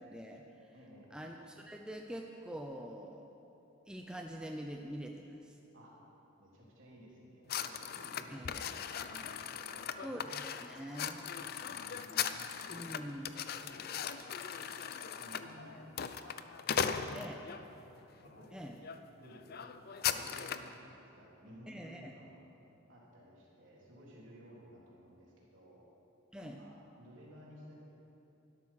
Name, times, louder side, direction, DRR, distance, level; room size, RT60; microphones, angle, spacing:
voice 1, 0.0-0.7 1.1-3.3 3.9-5.6 8.3-8.6 10.0-11.2 12.7-13.3 17.1-17.4 18.5-18.8 21.7-22.1 26.3-26.6, equal, 5° right, 1 dB, 0.5 m, -45 dB
voice 2, 0.7-1.3 5.7-5.9 6.4-10.1 11.3-12.5 12.9-13.0 13.4-13.9 15.1-16.4 16.7-17.2 17.7-17.9 18.2-18.5 19.2-22.5 22.9-25.8 26.3-27.8, equal, 65° right, -5 dB, 3.6 m, -56 dB
sound 1, 7.5-17.6 18.2-18.5 18.8-19.0 19.2-20.7, left 8 dB, 45° left, 0.5 m, -39 dB
12.0 x 12.0 x 5.8 m, 3.0 s
head